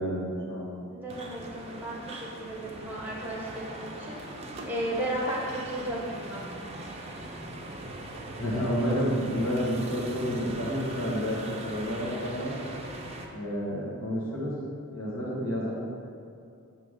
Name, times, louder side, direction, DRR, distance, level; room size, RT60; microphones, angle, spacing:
voice 1, 0.0-0.7 8.4-11.4 11.6-12.5 13.3-14.5 14.9-15.7, equal, 65° left, -5 dB, 1.4 m, -30 dB
voice 2, 0.9-4.2 4.7-6.4, right 1 dB, 10° right, -4 dB, 0.9 m, -34 dB
sound 1, 1.1-13.3, right 1 dB, 30° right, 0.5 m, -40 dB
6.7 x 3.0 x 4.8 m, 2.4 s
head